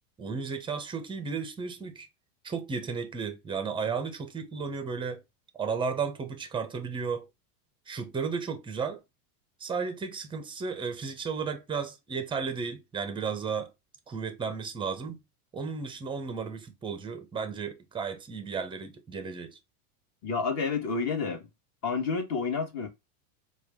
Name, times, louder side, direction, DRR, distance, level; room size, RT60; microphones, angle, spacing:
voice 1, 0.2-2.1 2.4-5.2 5.5-7.3 7.9-9.0 9.6-13.7 14.1-15.2 15.5-19.6, right 5 dB, 10° right, 0.5 m, -34 dB
voice 2, 20.2-21.4 21.8-22.9, left 5 dB, 35° left, 1.2 m, -29 dB
4.4 x 2.3 x 3.4 m
supercardioid pair, 125°, 45 cm